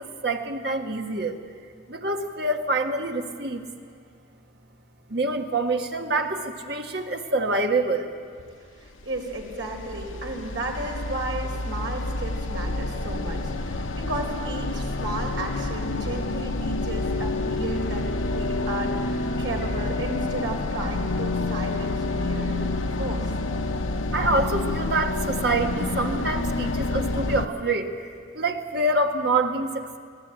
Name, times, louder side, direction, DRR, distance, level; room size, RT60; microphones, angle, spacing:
voice 1, 0.0-1.3 1.9-3.6 5.1-8.1 24.1-28.0 28.3-30.0, right 2 dB, 55° right, 3 dB, 1.5 m, -26 dB
voice 2, 8.7-22.7 23.0-23.3, right 2 dB, 75° right, 0 dB, 4.2 m, -34 dB
sound 1, 9.0-27.5, left 2 dB, 90° left, 0.9 m, -28 dB
23.5 x 16.5 x 8.9 m, 2.2 s
head